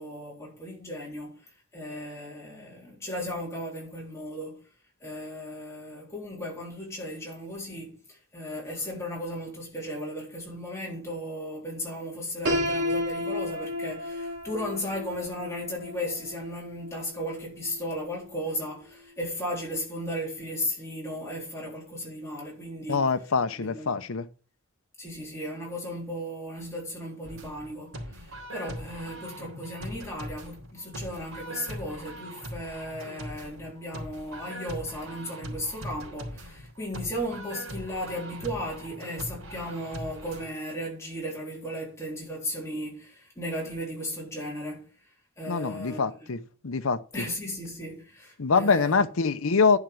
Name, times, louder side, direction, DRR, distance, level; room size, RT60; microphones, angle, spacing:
voice 1, 0.0-1.4 1.7-4.6 5.0-23.1 23.5-24.0 25.0-44.9 45.4-46.3 47.1-49.0, equal, 15° left, 3.8 m, -36 dB
Piano, 12.4-18.3, left 1 dB, 60° right, 2.8 m, -32 dB
voice 2, 22.9-24.3 45.5-46.4 46.6-47.0 48.4-49.8, left 4 dB, 75° left, 0.8 m, -24 dB
sound 1, 27.2-40.5, equal, 75° right, 3.8 m, -41 dB
11.0 x 5.9 x 5.3 m
head